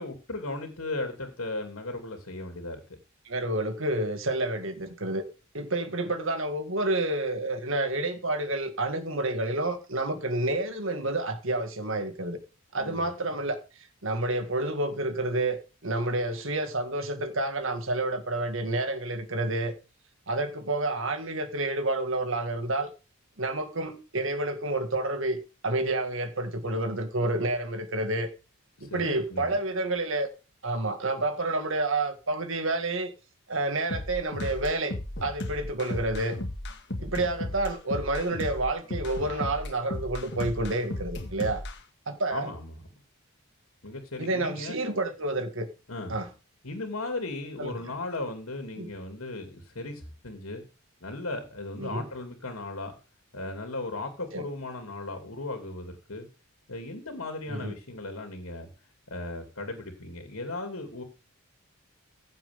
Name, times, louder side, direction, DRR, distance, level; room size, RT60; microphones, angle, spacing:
voice 1, 0.0-2.8 12.8-13.1 28.8-29.5 42.3-42.8 43.8-44.8 45.9-46.1 46.6-50.6 51.0-52.9 53.3-56.3 56.7-58.7 59.1-61.0, left 2 dB, 80° left, 2.8 m, -36 dB
voice 2, 3.3-5.2 5.5-12.4 12.7-13.6 14.0-19.7 20.3-22.9 23.4-28.3 28.8-30.3 30.6-33.1 33.5-35.0 35.2-36.4 37.0-41.6 42.1-42.5 44.2-45.7 46.1-46.3 47.6-47.7 48.8-48.9 51.8-52.1 54.3-54.5 57.5-57.7, right 2 dB, 65° right, 1.9 m, -29 dB
sound 1, 33.9-41.8, left 1 dB, 55° left, 1.9 m, -35 dB
15.5 x 7.6 x 3.6 m
head